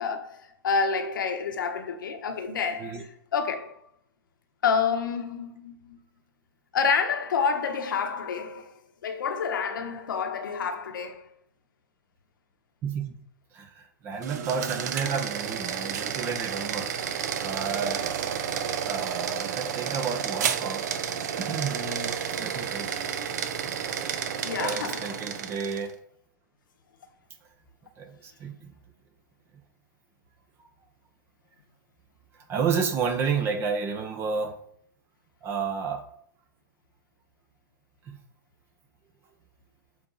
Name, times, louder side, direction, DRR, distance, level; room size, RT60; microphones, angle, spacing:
voice 1, 0.0-3.8 4.6-6.0 6.7-11.3 24.4-25.2, left 5 dB, 75° left, 1.1 m, -29 dB
voice 2, 12.8-13.2 13.5-16.9 17.4-18.0 18.9-20.8 21.4-23.1 23.7-25.9 28.0-28.7 32.5-34.5 35.4-36.0, right 5 dB, 20° right, 0.8 m, -31 dB
sound 1, 14.1-25.9, right 8 dB, 55° right, 0.8 m, -31 dB
7.5 x 3.8 x 5.5 m
hypercardioid pair, 150°, 11 cm